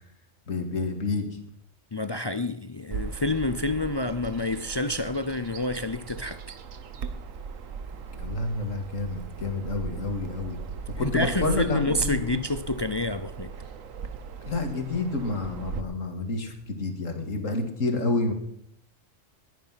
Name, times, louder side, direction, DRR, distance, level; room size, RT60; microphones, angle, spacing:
voice 1, 0.5-1.3 8.2-10.6 11.0-12.4 14.4-18.3, left 3 dB, 75° left, 2.6 m, -29 dB
voice 2, 1.9-6.6 11.0-13.5, left 2 dB, 40° left, 0.3 m, -28 dB
Bird vocalization bird call bird song, 2.9-15.8, right 6 dB, 80° right, 1.4 m, -38 dB
20.5 x 9.2 x 5.8 m
omnidirectional pair, 1.3 m